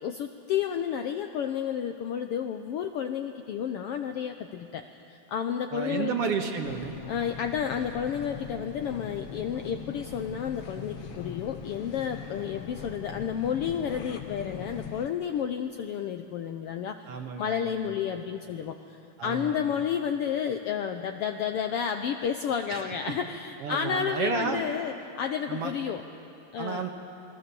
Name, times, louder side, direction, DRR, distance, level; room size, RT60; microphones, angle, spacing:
voice 1, 0.0-6.1 7.1-17.1 17.4-26.0 26.5-26.8, left 8 dB, 75° left, 6 dB, 1.4 m, -31 dB
voice 2, 5.7-6.9 17.1-17.9 19.2-19.7 22.7-23.1 23.6-24.6 25.5-25.7 26.6-26.9, right 5 dB, 60° right, 4 dB, 2.2 m, -32 dB
sound 1, 6.6-15.1, left 6 dB, 55° left, 1.9 m, -41 dB
28.0 x 20.5 x 7.0 m, 2.8 s
omnidirectional pair, 3.4 m